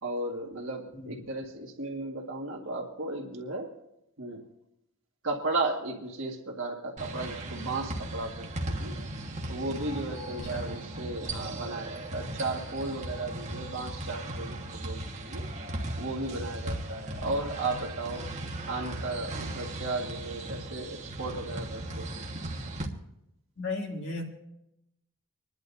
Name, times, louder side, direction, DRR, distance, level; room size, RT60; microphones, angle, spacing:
voice 1, 0.0-3.7 4.2-4.4 5.2-15.5 16.0-18.3 18.7-22.2, right 2 dB, 55° right, 1 dB, 1.9 m, -35 dB
sound 1, 7.0-22.8, right 1 dB, 30° right, 1.4 m, -37 dB
voice 2, 23.6-24.2, left 3 dB, 55° left, 0 dB, 2.4 m, -35 dB
26.5 x 11.0 x 2.7 m, 0.84 s
head